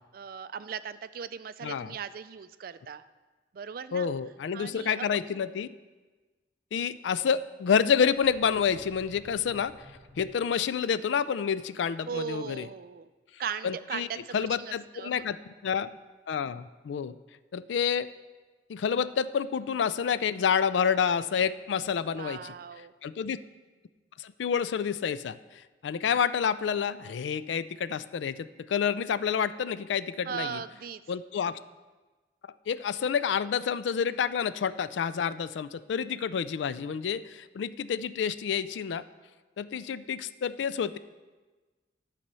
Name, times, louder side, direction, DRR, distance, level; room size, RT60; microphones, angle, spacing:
voice 1, 0.1-3.0 3.5-4.1 4.5-5.1 12.1-13.1 13.4-15.3 22.1-22.9 30.3-31.0, right 7 dB, 50° right, 13 dB, 0.3 m, -38 dB
voice 2, 1.6-1.9 3.9-5.7 6.7-9.7 10.2-12.7 13.6-14.1 14.3-15.9 16.3-17.2 17.5-18.1 18.7-22.5 23.0-23.4 24.2-30.6 31.1-31.6 32.7-39.0 39.6-41.0, left 7 dB, 80° left, 14 dB, 0.3 m, -29 dB
sound 1, 8.0-10.8, equal, 5° left, 1.6 m, -53 dB
11.5 x 4.2 x 6.8 m, 1.3 s
head